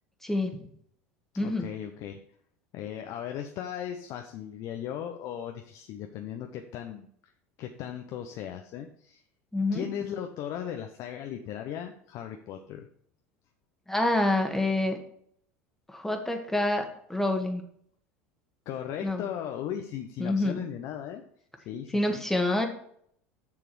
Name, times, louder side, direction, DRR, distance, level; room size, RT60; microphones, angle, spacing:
voice 1, 0.2-0.6 1.4-1.7 9.5-9.9 13.9-15.0 15.9-17.6 19.0-19.2 20.2-20.6 21.9-22.7, left 2 dB, 5° left, 4 dB, 1.7 m, -27 dB
voice 2, 1.4-2.2 2.7-7.1 7.6-9.2 9.7-12.9 18.7-21.2 21.7-22.2, left 9 dB, 55° left, 4 dB, 0.9 m, -37 dB
7.1 x 6.7 x 4.7 m, 0.64 s
hypercardioid pair, 80°, 7 cm